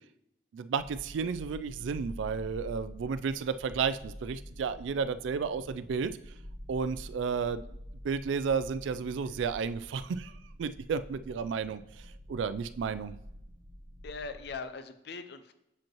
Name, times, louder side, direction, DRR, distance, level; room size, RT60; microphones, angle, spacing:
voice 1, 0.5-6.1 6.7-7.6 8.0-10.3 10.6-11.8 12.3-13.1, right 5 dB, 85° right, 13 dB, 0.3 m, -32 dB
sound 1, 0.8-14.5, equal, 40° right, 1.4 m, -47 dB
voice 2, 14.0-15.5, left 4 dB, 65° left, 10 dB, 0.6 m, -41 dB
7.1 x 5.2 x 3.0 m, 0.84 s
head